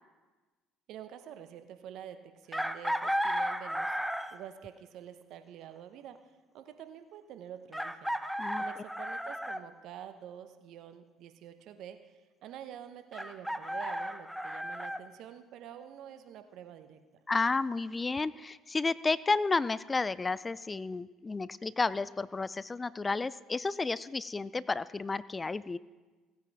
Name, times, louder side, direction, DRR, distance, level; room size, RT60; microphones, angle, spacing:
voice 1, 0.9-4.0 4.3-8.1 8.6-12.1 12.4-17.0, right 10 dB, 65° right, 9 dB, 0.9 m, -47 dB
Chicken rooster, 2.5-4.5 6.2-6.3 7.7-9.6 13.1-15.0, equal, ahead, 0.7 m, -34 dB
voice 2, 17.3-25.8, left 3 dB, 25° left, 19 dB, 0.4 m, -31 dB
17.0 x 9.4 x 3.5 m, 1.3 s
hypercardioid pair, 65°, 0 cm